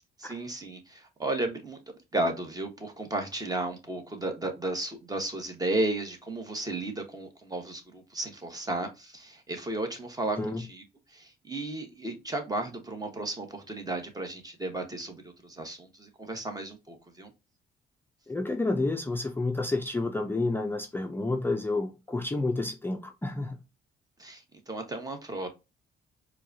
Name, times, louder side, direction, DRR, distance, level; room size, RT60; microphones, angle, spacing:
voice 1, 0.2-1.8 2.1-10.8 11.1-17.3 24.2-25.5, right 2 dB, 20° right, 1.2 m, -34 dB
voice 2, 18.3-23.6, left 2 dB, 10° left, 0.5 m, -30 dB
4.6 x 2.3 x 2.6 m
cardioid pair, 90°, 20 cm